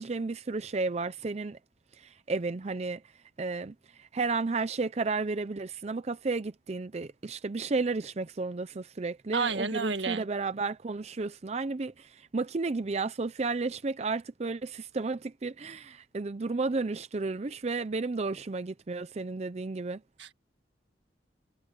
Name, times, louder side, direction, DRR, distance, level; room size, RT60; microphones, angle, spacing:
voice 1, 0.0-1.6 2.0-3.0 3.4-20.0, right 3 dB, 35° right, 0.5 m, -32 dB
voice 2, 9.3-10.2 20.2-20.3, right 4 dB, 85° right, 1.7 m, -30 dB
head